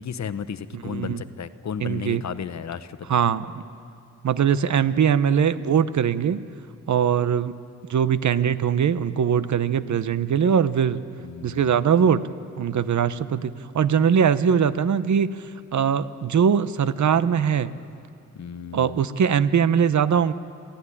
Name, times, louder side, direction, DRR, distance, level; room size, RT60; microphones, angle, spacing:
voice 1, 0.0-3.1 11.2-11.7 18.3-19.0, left 7 dB, 65° left, 13 dB, 1.0 m, -34 dB
voice 2, 0.9-1.2 1.8-2.2 3.1-3.6 4.2-6.4 6.9-7.5 7.9-11.0 11.4-12.2 12.6-15.4 15.7-17.7 18.7-20.3, right 7 dB, 70° right, 13 dB, 0.9 m, -21 dB
26.5 x 16.0 x 9.9 m, 2.5 s
wide cardioid pair, 115°, 30 cm